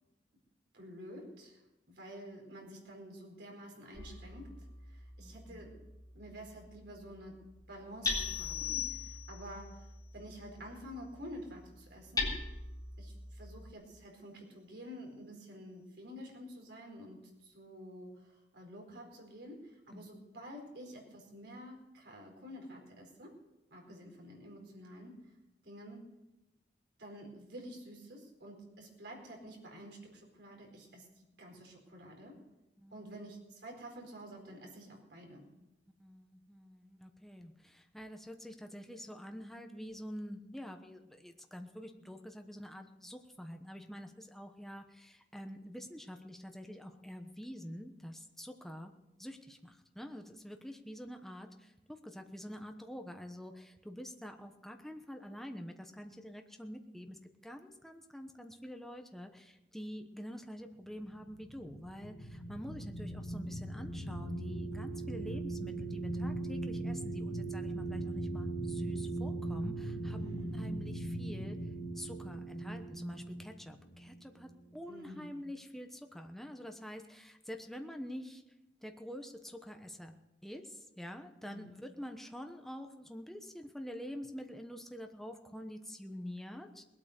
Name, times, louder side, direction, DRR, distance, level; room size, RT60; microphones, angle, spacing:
voice 1, 0.7-1.6 1.9-4.6 4.8-5.7 6.1-7.4 7.7-9.9 10.1-12.4 13.0-23.4 23.7-25.2 25.6-26.0 27.0-32.4 32.9-35.4 70.2-70.6 74.9-75.4 81.4-81.7, equal, 70° right, 0 dB, 4.5 m, -49 dB
Hammer, 3.9-13.7, left 3 dB, 20° left, 3.7 m, -43 dB
voice 2, 5.2-5.7 19.9-20.1 23.9-24.1 32.8-33.2 36.0-48.9 49.2-71.6 71.9-78.4 78.8-80.2 80.4-86.8, equal, ahead, 4 dB, 1.1 m, -47 dB
sound 1, 8.0-9.6, left 13 dB, 65° left, 0.8 m, -39 dB
sound 2, 61.1-74.7, right 2 dB, 45° left, 2.6 m, -39 dB
20.5 x 8.8 x 6.6 m, 0.96 s
head